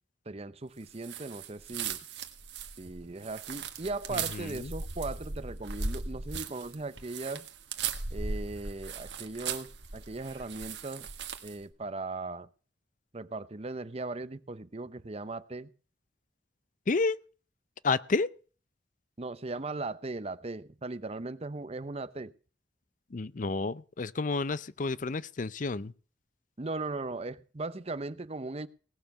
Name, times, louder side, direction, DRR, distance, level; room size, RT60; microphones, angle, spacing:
voice 1, 0.3-2.0 2.8-7.4 8.1-11.1 11.4-12.5 13.1-15.7 19.2-22.3 26.6-28.7, right 3 dB, 35° right, 0.8 m, -38 dB
sound 1, 1.0-11.6, right 5 dB, 65° right, 1.6 m, -38 dB
voice 2, 4.1-4.7 16.9-17.2 17.8-18.3 23.1-25.9, left 3 dB, 45° left, 0.5 m, -30 dB
18.0 x 6.9 x 6.9 m
head